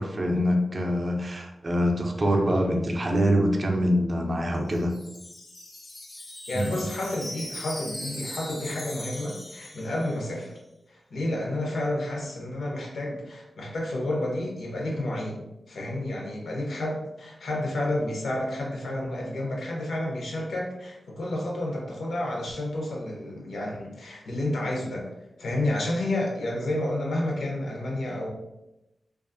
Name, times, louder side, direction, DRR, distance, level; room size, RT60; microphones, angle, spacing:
voice 1, 0.0-4.9, equal, 35° right, 2 dB, 0.4 m, -24 dB
Wind chime, 4.4-10.4, left 1 dB, 30° left, 0.4 m, -40 dB
voice 2, 6.5-10.5 10.9-25.1 25.4-28.3, left 1 dB, 85° left, -1 dB, 0.6 m, -30 dB
2.4 x 2.3 x 2.5 m, 0.93 s
wide cardioid pair, 125°, 0 cm